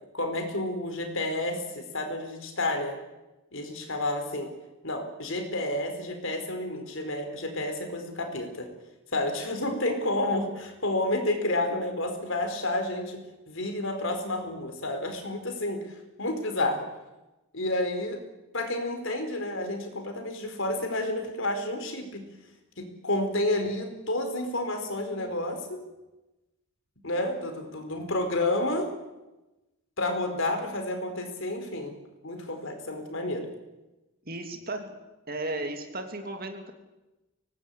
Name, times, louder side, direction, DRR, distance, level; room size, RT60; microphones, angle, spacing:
voice 1, 0.1-3.0 3.5-4.5 4.8-8.7 9.1-13.2 13.5-15.8 16.2-16.9 17.5-18.2 18.5-22.2 22.8-25.8 27.0-28.9 30.0-31.9 32.2-33.5, left 1 dB, 60° left, 5 dB, 4.6 m, -30 dB
voice 2, 34.2-34.9 35.3-36.7, right 2 dB, 40° right, 5 dB, 2.9 m, -35 dB
24.0 x 19.0 x 8.6 m, 1.0 s
head